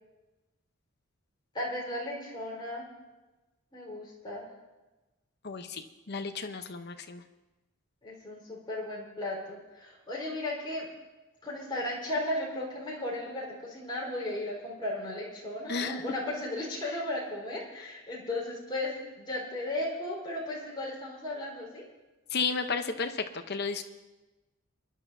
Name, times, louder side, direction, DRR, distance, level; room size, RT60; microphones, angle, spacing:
voice 1, 1.5-2.9 3.7-4.4 8.0-10.9 11.4-21.8, left 1 dB, 20° left, -5 dB, 4.4 m, -35 dB
voice 2, 5.4-7.2 15.7-16.0 22.3-23.8, left 4 dB, 50° left, 7 dB, 0.9 m, -33 dB
27.0 x 11.5 x 2.8 m, 1.1 s
head